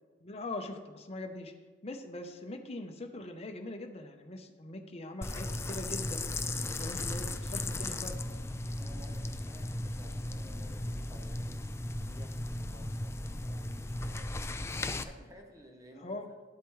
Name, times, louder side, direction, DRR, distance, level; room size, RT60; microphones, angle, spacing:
voice 1, 0.2-1.5 1.8-6.3 6.8-8.2 16.0-16.3, left 2 dB, 35° left, 4 dB, 0.8 m, -42 dB
sound 1, 5.2-15.0, left 2 dB, 15° left, 0.4 m, -36 dB
voice 2, 8.8-14.4 15.0-16.3, equal, 20° right, 2 dB, 1.1 m, -55 dB
10.5 x 8.1 x 3.2 m, 1.4 s
head